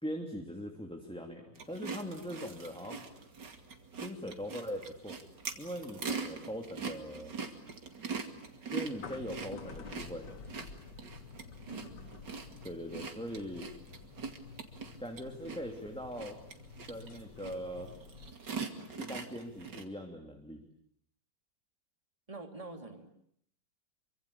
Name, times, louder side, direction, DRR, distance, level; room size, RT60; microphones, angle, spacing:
voice 1, 0.0-3.1 3.9-5.2 5.6-7.3 8.7-10.3 12.6-13.7 15.0-16.4 16.9-17.9 19.0-20.6, equal, 5° left, 3 dB, 2.8 m, -41 dB
sound 1, 1.5-19.8, right 5 dB, 70° right, 3.1 m, -43 dB
sound 2, 7.0-18.3, left 6 dB, 70° left, 2.2 m, -51 dB
voice 2, 11.7-12.0 22.3-23.1, right 3 dB, 20° right, 5 dB, 3.2 m, -45 dB
27.0 x 25.0 x 8.6 m, 0.68 s
omnidirectional pair, 2.0 m